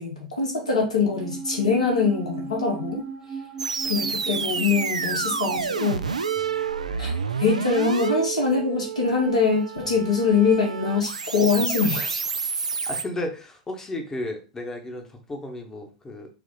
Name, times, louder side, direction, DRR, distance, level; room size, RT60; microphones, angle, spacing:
voice 1, 0.0-3.1 3.8-6.0 7.0-7.1 7.4-12.2, left 4 dB, 75° left, 0 dB, 1.4 m, -23 dB
sound 1, 1.0-7.6 7.8-7.9, right 5 dB, 25° right, 0.9 m, -38 dB
sound 2, 3.6-13.0, right 5 dB, 80° right, 0.4 m, -29 dB
voice 2, 12.9-16.3, left 1 dB, 15° left, 3 dB, 1.0 m, -34 dB
4.6 x 2.4 x 3.7 m, 0.33 s
figure-of-eight pair, 90°, 4 cm